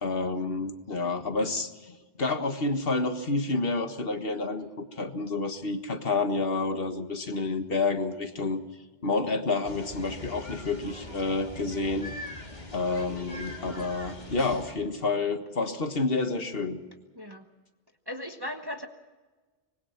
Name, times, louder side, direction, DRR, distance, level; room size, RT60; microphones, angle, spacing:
voice 1, 0.0-8.6 9.0-12.1 12.7-16.8, left 3 dB, 60° left, 7 dB, 1.8 m, -29 dB
sound 1, 9.6-14.7, left 1 dB, 40° left, 2.5 m, -41 dB
voice 2, 17.1-17.5 18.1-18.9, left 1 dB, 20° right, 5 dB, 1.1 m, -37 dB
25.5 x 20.5 x 5.9 m, 1.3 s
omnidirectional pair, 1.1 m